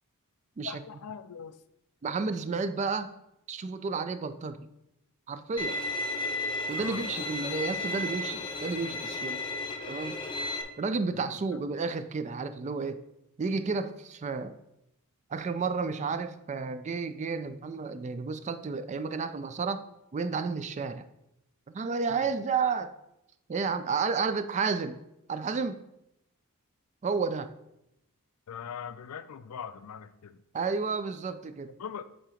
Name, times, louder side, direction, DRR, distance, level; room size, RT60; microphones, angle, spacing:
voice 1, 0.6-1.6 6.8-7.0 11.2-11.4 22.1-22.2 28.5-30.4 31.8-32.0, left 7 dB, 75° left, 12 dB, 0.4 m, -41 dB
voice 2, 2.0-3.1 3.5-4.7 5.3-5.8 6.7-9.4 9.9-10.2 10.8-13.0 13.4-14.5 15.3-19.8 20.1-21.1 21.7-22.9 23.5-25.0 25.3-25.8 27.0-27.5 30.5-31.7, right 4 dB, 30° right, 11 dB, 0.3 m, -31 dB
Bowed string instrument, 5.6-10.6, left 2 dB, 20° left, 0.7 m, -33 dB
7.6 x 2.9 x 4.9 m, 0.83 s
head